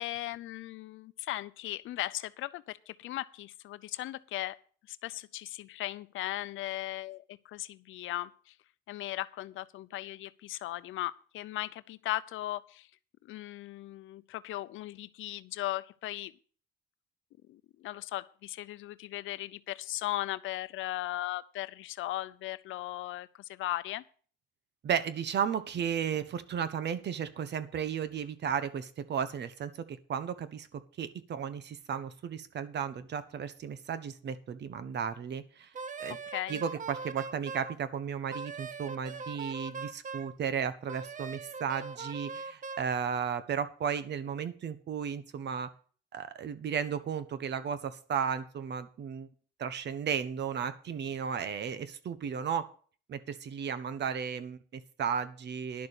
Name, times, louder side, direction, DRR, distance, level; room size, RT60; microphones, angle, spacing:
voice 1, 0.0-4.6 4.9-8.5 8.9-12.9 13.2-16.3 17.5-24.0 36.1-36.6, left 15 dB, 85° left, 16 dB, 0.6 m, -37 dB
voice 2, 24.8-35.7 36.0-36.2 36.5-45.7 46.1-49.3 49.6-52.7 53.1-55.9, right 7 dB, 60° right, 13 dB, 1.2 m, -34 dB
Wind instrument woodwind instrument, 35.8-37.8 38.3-40.3 40.9-42.9, right 5 dB, 40° right, 0.8 m, -41 dB
11.0 x 6.8 x 6.7 m, 0.43 s
cardioid pair, 90°, 20 cm